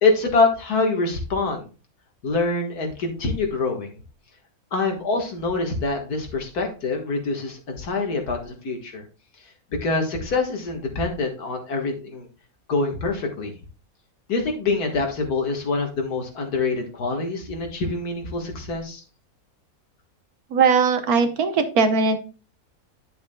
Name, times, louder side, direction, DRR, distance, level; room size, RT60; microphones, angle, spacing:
voice 1, 0.0-1.7 2.2-4.0 4.7-9.0 9.8-12.3 12.7-13.5 14.3-19.0, left 3 dB, 80° left, 3 dB, 2.1 m, -25 dB
voice 2, 20.5-22.2, right 5 dB, 75° right, 8 dB, 1.5 m, -19 dB
10.5 x 7.0 x 2.2 m, 0.34 s
omnidirectional pair, 1.6 m